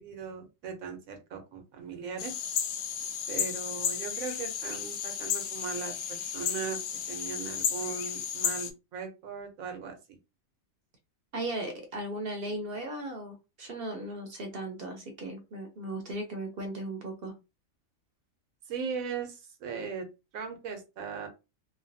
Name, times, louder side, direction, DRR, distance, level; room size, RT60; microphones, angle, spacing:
voice 1, 0.0-2.4 3.3-10.2 18.7-20.1 20.3-21.3, right 6 dB, 90° right, 5 dB, 1.2 m, -38 dB
sound 1, 2.2-8.7, left 8 dB, 65° left, 0.7 m, -33 dB
voice 2, 11.3-17.3, right 1 dB, 55° right, 4 dB, 0.7 m, -37 dB
3.1 x 2.2 x 2.6 m, 0.27 s
omnidirectional pair, 1.4 m